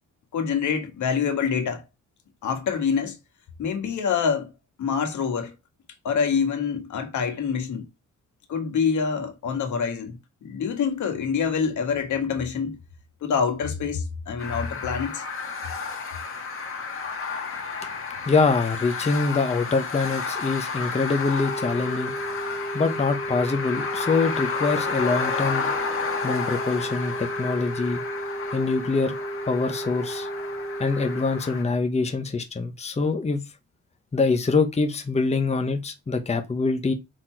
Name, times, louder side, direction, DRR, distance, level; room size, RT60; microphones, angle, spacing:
voice 1, 0.3-1.8 2.4-3.2 3.6-4.5 4.8-5.5 6.0-7.9 8.5-12.8 13.2-15.2, left 6 dB, 70° left, 1.8 m, -26 dB
sound 1, 14.4-31.6, left 5 dB, 45° left, 1.6 m, -31 dB
voice 2, 18.3-22.1 22.7-25.7 26.2-28.0 28.5-29.1 29.5-30.3 30.8-33.4 34.1-36.9, left 4 dB, 20° left, 1.0 m, -24 dB
sound 2, 21.4-31.4, right 2 dB, 25° right, 3.6 m, -34 dB
6.0 x 4.2 x 4.6 m
cardioid pair, 110°, 30 cm